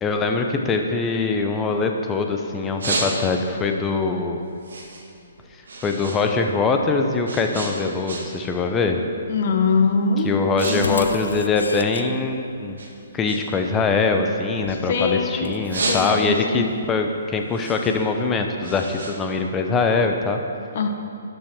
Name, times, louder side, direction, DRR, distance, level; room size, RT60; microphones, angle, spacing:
voice 1, 0.0-4.4 5.8-9.0 10.2-12.8 13.1-20.4, left 4 dB, 15° left, 4 dB, 0.9 m, -23 dB
sound 1, 1.0-2.2 2.5-3.6 4.0-6.2 6.5-8.5 8.8-9.2 9.8-9.9 10.2-10.8 11.0-12.3 12.7-15.1 15.5-16.5 16.9-20.0, right 3 dB, 65° right, 2.0 m, -31 dB
voice 2, 9.3-10.3 10.7-11.1 14.7-16.7 20.7-20.9, left 4 dB, 45° left, 4 dB, 1.3 m, -23 dB
sound 2, 10.2-12.0 14.7-14.9 15.4-16.2, left 3 dB, 70° left, 0.6 m, -32 dB
13.0 x 10.5 x 4.6 m, 2.6 s
figure-of-eight pair, 130°, 0 cm